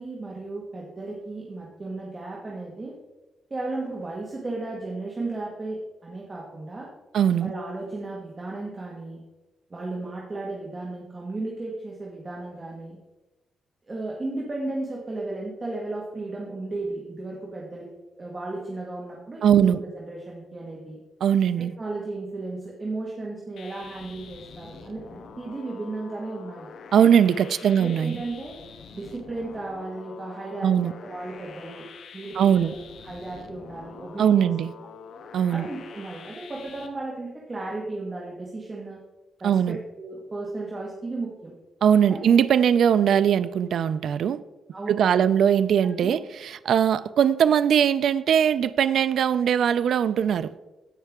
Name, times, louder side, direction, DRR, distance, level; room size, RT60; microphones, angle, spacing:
voice 1, 0.0-3.0 3.5-6.9 7.4-9.2 9.7-13.0 13.9-17.9 18.2-21.0 21.6-26.7 27.5-28.6 28.9-31.8 32.1-32.8 33.0-34.5 35.5-39.0 39.4-41.5 42.1-42.2 44.7-45.2 46.0-46.1, right 2 dB, 25° right, 1.6 m, -34 dB
voice 2, 7.1-7.5 19.4-19.8 21.2-21.7 26.9-28.2 30.6-30.9 32.3-32.7 34.2-34.7 35.3-35.7 39.4-39.8 41.8-44.4 44.9-50.5, right 8 dB, 65° right, 0.4 m, -20 dB
sound 1, 23.6-36.9, left 6 dB, 70° left, 1.1 m, -45 dB
16.0 x 5.5 x 3.6 m
cardioid pair, 140°, 0 cm